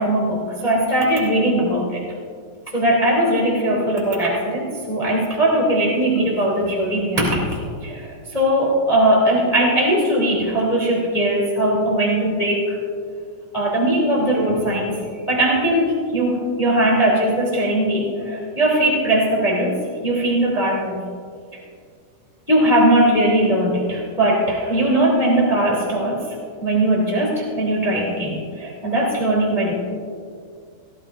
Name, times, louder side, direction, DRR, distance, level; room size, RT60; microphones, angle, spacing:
voice 1, 0.0-2.0 2.7-12.8 13.5-15.0 15.3-19.7 20.0-21.0 22.5-26.2 26.6-29.7, right 1 dB, 25° left, -4 dB, 1.0 m, -19 dB
18.0 x 14.0 x 2.5 m, 2.2 s
omnidirectional pair, 5.4 m